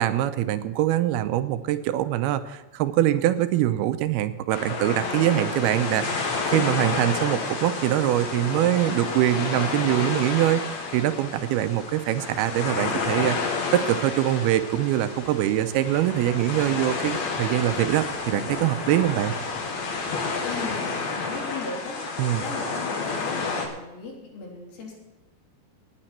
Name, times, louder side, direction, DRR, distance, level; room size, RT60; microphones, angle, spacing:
voice 1, 0.0-10.6 10.9-19.3 22.2-22.4, right 13 dB, 90° right, 11 dB, 2.7 m, -23 dB
sound 1, 4.5-23.7, left 4 dB, 55° left, 2.7 m, -30 dB
sound 2, 15.1-20.1, left 1 dB, 40° left, 5.5 m, -48 dB
voice 2, 20.4-22.0 22.4-24.9, left 3 dB, 70° left, -2 dB, 5.3 m, -37 dB
19.0 x 8.9 x 4.4 m, 1.1 s
omnidirectional pair, 4.4 m